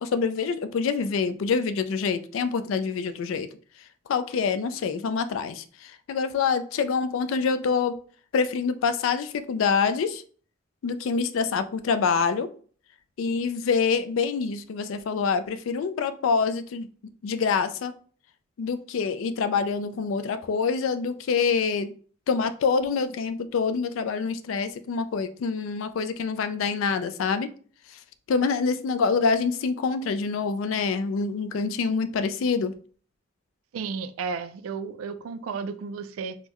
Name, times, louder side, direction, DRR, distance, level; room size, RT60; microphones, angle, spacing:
voice 1, 0.0-3.5 4.1-8.0 8.3-10.2 10.8-12.5 13.2-16.9 17.2-17.9 18.6-21.9 22.3-27.5 28.3-32.7, left 5 dB, 70° left, 0.3 m, -26 dB
voice 2, 33.7-36.4, right 5 dB, 85° right, 0.3 m, -33 dB
3.7 x 2.1 x 2.9 m
head